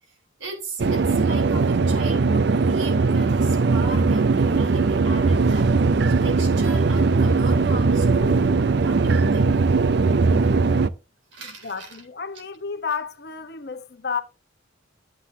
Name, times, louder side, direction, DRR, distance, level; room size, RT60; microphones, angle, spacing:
voice 1, 0.4-5.7 6.2-9.5 11.3-12.0, right 2 dB, 75° right, 3.8 m, -36 dB
sound 1, 0.8-10.9, right 4 dB, 55° right, 0.5 m, -19 dB
voice 2, 11.4-14.2, left 6 dB, 55° left, 1.0 m, -31 dB
12.0 x 8.0 x 2.7 m
head